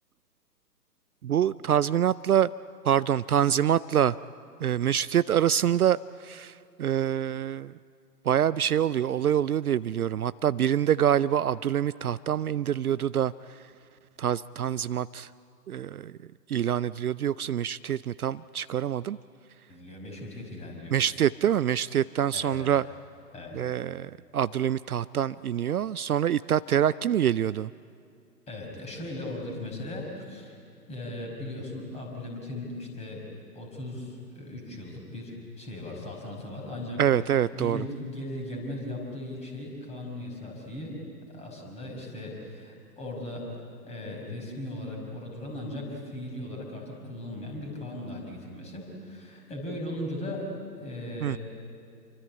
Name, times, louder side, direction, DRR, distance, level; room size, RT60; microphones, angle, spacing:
voice 1, 1.2-2.5 2.8-4.2 4.6-6.5 6.8-7.7 8.3-13.3 14.2-15.3 15.7-16.1 16.5-19.2 20.9-22.8 23.5-27.7 37.0-37.8 51.2-51.4, right 10 dB, 65° right, 17 dB, 0.5 m, -25 dB
voice 2, 19.7-21.0 22.3-22.7 23.3-23.6 28.5-30.6 30.9-33.3 33.5-37.1 37.5-41.0 41.3-43.5 43.8-50.5 50.8-51.4, left 1 dB, 15° left, 0 dB, 5.6 m, -38 dB
28.0 x 24.0 x 8.6 m, 2.5 s
figure-of-eight pair, 130°, 49 cm